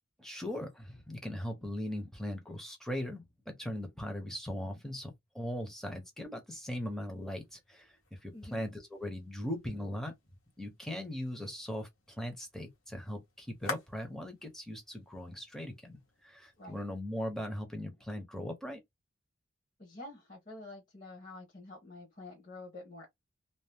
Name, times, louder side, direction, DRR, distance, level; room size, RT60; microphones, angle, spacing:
voice 1, 0.2-10.1 10.6-18.8, equal, ahead, 0.8 m, -39 dB
sound 1, 7.0-17.0, left 4 dB, 90° left, 1.2 m, -50 dB
voice 2, 8.3-8.6 16.6-16.8 19.8-23.1, left 2 dB, 40° left, 1.1 m, -48 dB
2.8 x 2.0 x 3.3 m
head